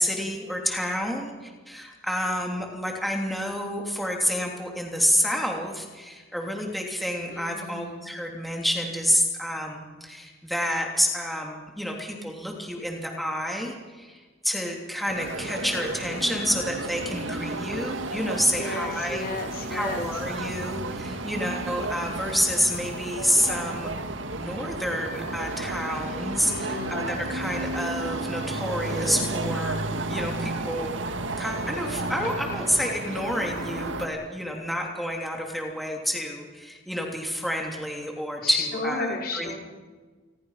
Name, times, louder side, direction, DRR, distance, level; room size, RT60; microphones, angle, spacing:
voice 1, 0.0-19.3 19.7-23.9 24.3-31.0 31.4-39.5, equal, ahead, 0 dB, 3.0 m, -29 dB
voice 2, 7.3-8.0 18.6-20.1 26.5-27.2 38.4-39.5, left 3 dB, 50° left, 3 dB, 3.5 m, -33 dB
sound 1, 15.1-34.1, right 2 dB, 75° right, 1.8 m, -32 dB
28.0 x 21.0 x 5.8 m, 1.4 s
head